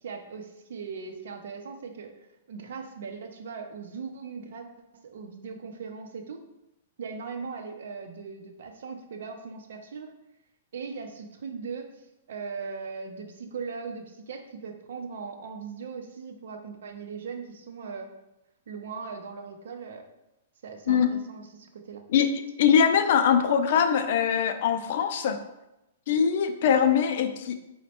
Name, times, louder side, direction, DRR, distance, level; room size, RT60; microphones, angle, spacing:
voice 1, 0.0-4.7 4.9-6.5 7.0-10.1 10.7-18.1 18.7-20.1 20.6-22.0, right 5 dB, 70° right, 5 dB, 0.5 m, -39 dB
voice 2, 22.6-25.4 26.1-27.5, left 7 dB, 50° left, 8 dB, 0.3 m, -22 dB
4.1 x 2.1 x 4.2 m, 0.92 s
hypercardioid pair, 165°, 0 cm